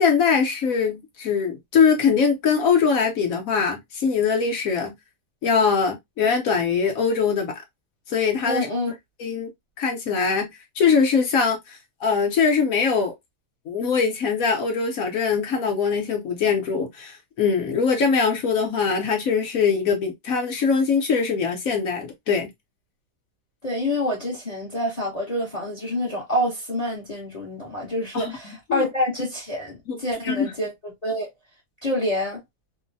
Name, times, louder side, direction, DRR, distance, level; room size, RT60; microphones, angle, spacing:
voice 1, 0.0-4.9 5.4-7.5 8.1-8.7 9.2-9.5 9.8-10.5 10.8-13.1 13.7-22.5 28.1-28.9 29.9-30.0 30.2-30.5, left 5 dB, 60° left, 1.0 m, -22 dB
voice 2, 8.5-8.9 23.6-30.7 31.0-31.3 31.8-32.4, left 1 dB, 30° left, 0.8 m, -27 dB
3.0 x 2.1 x 2.5 m
omnidirectional pair, 2.0 m